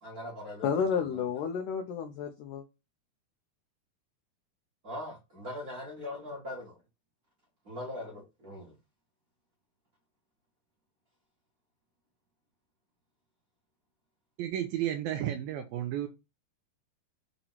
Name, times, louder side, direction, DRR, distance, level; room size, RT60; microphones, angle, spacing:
voice 1, 0.0-1.2 4.8-6.8 7.6-8.7, left 1 dB, 40° right, 1.3 m, -41 dB
voice 2, 0.6-2.6, left 7 dB, 80° left, 1.9 m, -31 dB
voice 3, 14.4-16.1, right 11 dB, 80° right, 2.2 m, -32 dB
6.7 x 3.0 x 5.6 m
omnidirectional pair, 4.7 m